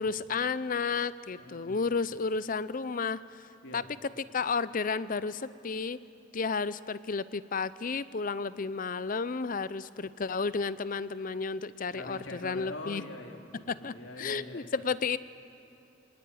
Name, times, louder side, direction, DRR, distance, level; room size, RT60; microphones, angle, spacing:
voice 1, 0.0-3.8 4.3-6.0 6.3-13.0 13.7-15.2, left 4 dB, 45° left, 16 dB, 0.6 m, -32 dB
voice 2, 1.4-1.9 3.6-3.9 11.9-14.8, left 2 dB, 75° left, 2 dB, 2.6 m, -44 dB
26.0 x 18.5 x 9.4 m, 2.8 s
head